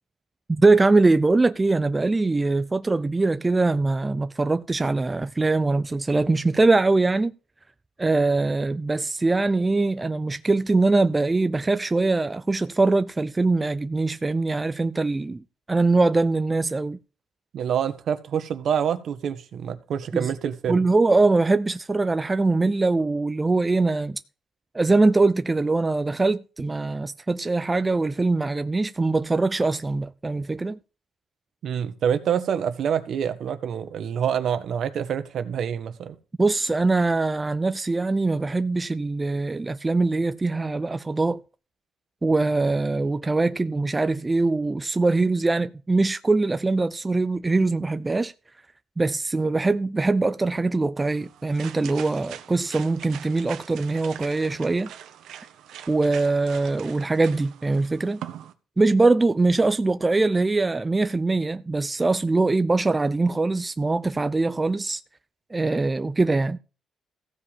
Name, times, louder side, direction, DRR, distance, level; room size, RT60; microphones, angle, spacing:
voice 1, 0.5-7.3 8.0-15.4 15.7-17.0 20.1-20.3 20.7-24.2 24.7-30.8 36.4-41.4 42.2-48.3 49.0-54.9 55.9-58.2 58.8-65.0 65.5-66.6, right 3 dB, 20° right, 0.5 m, -22 dB
voice 2, 17.5-20.9 31.6-36.1, right 8 dB, 65° right, 1.5 m, -26 dB
sound 1, 51.0-58.5, right 10 dB, 80° right, 1.3 m, -42 dB
15.0 x 5.0 x 7.3 m
cardioid pair, 90°, 0 cm